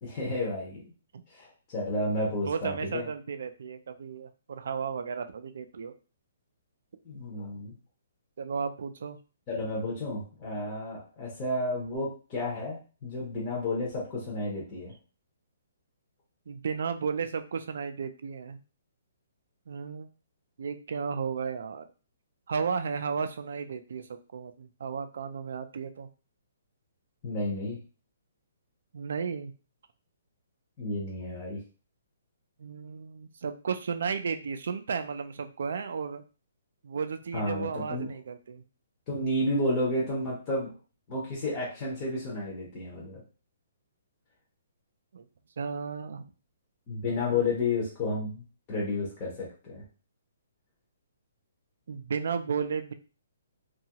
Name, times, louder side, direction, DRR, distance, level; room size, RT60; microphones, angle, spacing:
voice 1, 0.0-0.8 1.3-3.1 7.0-7.7 9.5-14.9 27.2-27.8 30.8-31.6 37.3-38.1 39.1-40.7 41.1-43.2 46.9-49.8, left 2 dB, 15° left, -4 dB, 0.6 m, -31 dB
voice 2, 2.4-5.9 8.4-9.2 16.5-18.6 19.7-20.1 20.6-21.9 22.5-26.1 28.9-29.5 32.6-36.2 36.8-38.6 45.1-45.2 45.6-46.3 47.3-47.4 51.9-52.9, right 6 dB, 55° right, 9 dB, 0.3 m, -34 dB
2.8 x 2.3 x 2.8 m, 0.35 s
hypercardioid pair, 180°, 0 cm